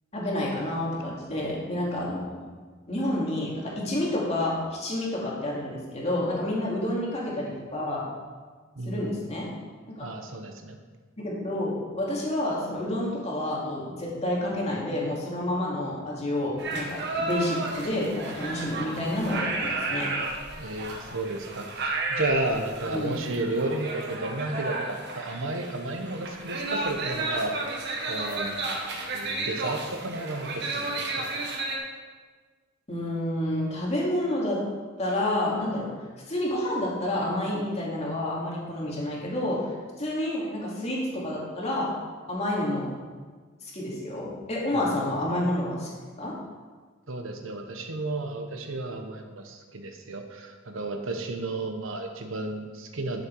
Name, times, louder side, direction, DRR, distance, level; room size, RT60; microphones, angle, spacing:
voice 1, 0.1-2.5 2.9-8.0 8.8-9.5 9.9-10.1 11.2-20.1 22.9-23.2 32.9-34.6 35.0-35.9 36.3-39.6 40.0-41.9 42.3-42.9 43.7-45.9 46.2-46.3, left 1 dB, 35° left, -4 dB, 2.5 m, -29 dB
voice 2, 8.7-9.2 10.0-10.8 20.6-28.7 29.1-31.3 44.7-44.9 47.1-53.2, right 2 dB, 75° right, 5 dB, 1.2 m, -33 dB
sound 1, 16.6-31.8, right 2 dB, 60° right, 1.6 m, -32 dB
11.5 x 7.1 x 4.8 m, 1.4 s
head